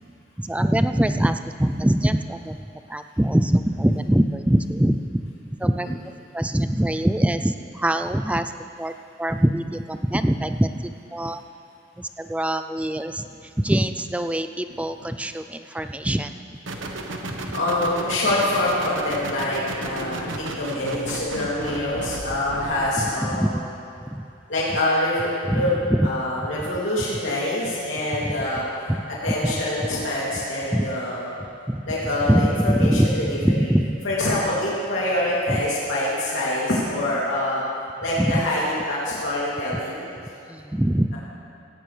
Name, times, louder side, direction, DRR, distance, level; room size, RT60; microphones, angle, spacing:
voice 1, 0.4-2.6 2.9-5.3 5.6-5.9 6.3-8.5 8.8-8.9 9.2-11.4 12.0-13.2 13.6-16.3 17.3-17.4 23.0-23.6 24.1-24.2 25.5-26.1 26.4-26.5 28.2-28.4 28.9-29.0 29.4-29.5 29.8-29.9 30.7-30.9 31.7-31.8 32.3-34.0 35.5-35.6 38.2-38.4 40.5-41.2, right 1 dB, 5° right, 9 dB, 0.3 m, -23 dB
sound 1, 16.7-23.0, right 2 dB, 80° right, 1.2 m, -33 dB
voice 2, 17.5-20.3 20.6-23.5 24.5-25.7 26.0-28.6 29.2-31.3 31.9-33.5 34.0-37.6 38.0-40.0, left 1 dB, 80° left, -7 dB, 2.8 m, -25 dB
17.0 x 16.5 x 3.4 m, 2.5 s
head